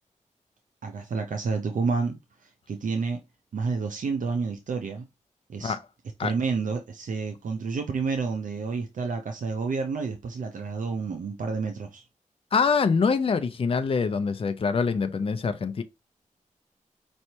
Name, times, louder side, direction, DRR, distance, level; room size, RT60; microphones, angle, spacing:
voice 1, 0.8-3.2 3.5-5.1 5.5-5.8 6.2-12.0, right 4 dB, 75° right, 0.6 m, -30 dB
voice 2, 12.5-15.8, left 5 dB, 45° left, 0.5 m, -24 dB
5.4 x 3.2 x 2.8 m
wide cardioid pair, 115°, 13 cm